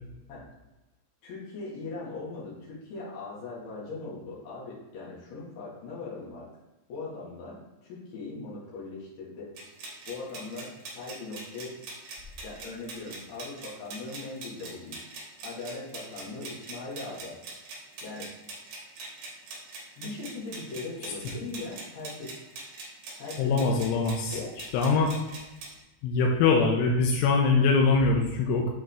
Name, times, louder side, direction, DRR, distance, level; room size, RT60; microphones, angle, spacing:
voice 1, 1.2-6.5 6.9-9.5 10.1-11.7 12.4-15.0 15.4-17.4 18.0-18.3 20.0-22.3 23.2-23.9 24.2-24.5, left 3 dB, 60° left, -6 dB, 3.0 m, -40 dB
sound 1, 9.6-25.8, right 3 dB, 60° right, 2.5 m, -43 dB
voice 2, 23.4-24.3 24.7-25.1 26.0-28.7, left 4 dB, 85° left, 0 dB, 2.2 m, -23 dB
7.8 x 3.7 x 3.4 m, 1.0 s
omnidirectional pair, 4.9 m